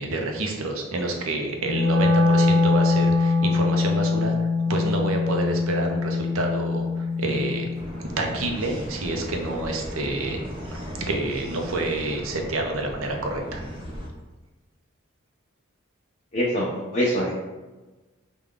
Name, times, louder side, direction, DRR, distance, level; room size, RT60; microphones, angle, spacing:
voice 1, 0.0-7.7 8.0-10.4 10.7-13.6, right 2 dB, 75° right, 2 dB, 0.6 m, -28 dB
Wind instrument woodwind instrument, 1.5-7.8, left 3 dB, 45° right, 1.1 m, -22 dB
sound 1, 7.7-14.1, equal, 25° right, 0.7 m, -36 dB
voice 2, 16.3-17.4, equal, 40° left, -6 dB, 0.6 m, -24 dB
3.4 x 2.3 x 3.7 m, 1.2 s
head